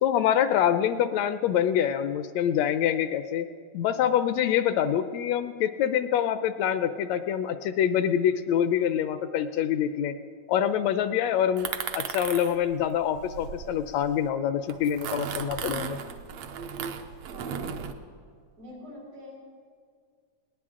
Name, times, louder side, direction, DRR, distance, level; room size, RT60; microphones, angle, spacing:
voice 1, 0.0-3.5 3.7-10.1 10.5-11.7 11.9-16.0, left 9 dB, 75° left, 11 dB, 1.7 m, -25 dB
sound 1, 11.6-14.2 14.7-17.9, right 7 dB, 70° right, 1.9 m, -36 dB
voice 2, 17.3-17.6 18.6-19.4, left 1 dB, 85° right, -4 dB, 6.3 m, -44 dB
20.0 x 18.5 x 3.7 m, 2.1 s
omnidirectional pair, 3.3 m